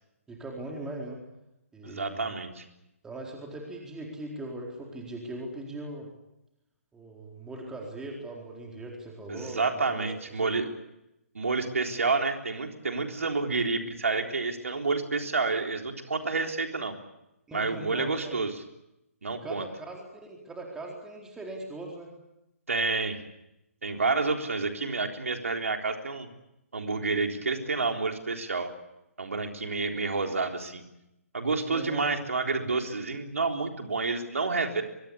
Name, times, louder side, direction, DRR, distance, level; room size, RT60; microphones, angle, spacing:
voice 1, 0.3-1.2 1.7-2.3 3.0-6.1 6.9-10.5 17.5-18.4 19.4-22.1 31.6-32.2, right 2 dB, 10° right, 0 dB, 4.2 m, -40 dB
voice 2, 1.8-2.6 9.3-10.7 11.3-16.9 17.5-18.6 19.2-19.7 22.7-23.2 23.8-26.3 26.7-28.7 29.2-30.8 31.3-34.8, right 3 dB, 70° right, 4 dB, 3.8 m, -29 dB
23.5 x 23.0 x 8.5 m, 0.89 s
figure-of-eight pair, 135°, 8 cm